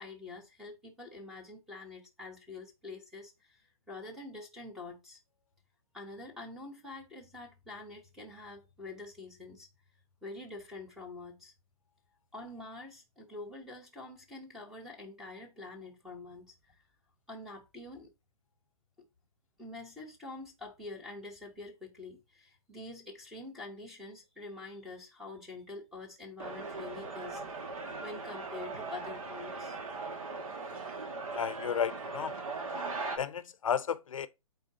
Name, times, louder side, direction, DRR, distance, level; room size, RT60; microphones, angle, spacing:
voice 1, 0.0-5.2 5.9-9.7 10.2-11.5 12.3-16.8 17.3-18.1 19.6-27.4 28.0-29.8, left 2 dB, ahead, 0.9 m, -46 dB
sound 1, 26.4-33.2, right 3 dB, 65° right, 2.0 m, -39 dB
voice 2, 31.3-32.3 33.2-34.3, left 7 dB, 65° left, 0.6 m, -33 dB
7.8 x 4.5 x 2.8 m
hypercardioid pair, 165°, 19 cm